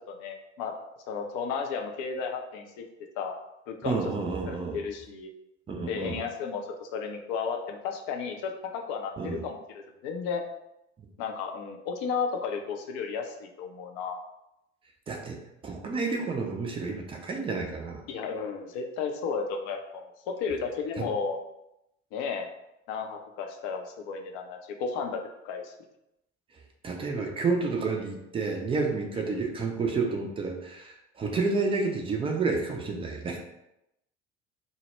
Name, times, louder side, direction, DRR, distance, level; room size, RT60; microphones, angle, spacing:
voice 1, 0.1-0.7 1.1-2.8 3.2-3.3 3.7-4.0 4.5-5.3 5.9-10.4 11.2-14.2 18.1-21.4 22.1-22.5 22.9-25.2 25.4-25.7 29.1-29.3, left 5 dB, 50° left, 3 dB, 0.5 m, -33 dB
voice 2, 3.8-4.8 5.7-6.2 9.2-9.4 11.0-11.1 15.1-18.0 21.0-21.1 26.8-33.4, right 4 dB, 15° right, 1 dB, 0.4 m, -30 dB
2.1 x 2.0 x 3.1 m, 0.86 s
figure-of-eight pair, 60°, 35 cm